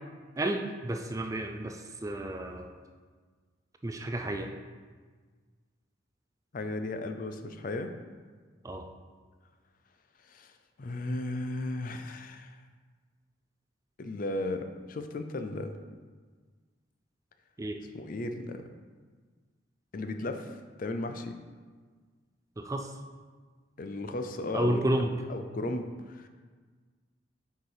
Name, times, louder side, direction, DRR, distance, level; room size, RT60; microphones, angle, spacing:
voice 1, 0.4-2.8 3.8-4.5 8.6-8.9 17.6-17.8 22.6-22.9 24.5-25.1, right 1 dB, 15° right, 5 dB, 0.3 m, -31 dB
voice 2, 6.5-7.9 10.2-10.5 10.8-12.6 14.0-15.7 17.9-18.6 19.9-21.3 23.8-25.0 25.3-26.3, left 2 dB, 45° left, 7 dB, 0.4 m, -35 dB
6.5 x 4.7 x 4.7 m, 1.5 s
head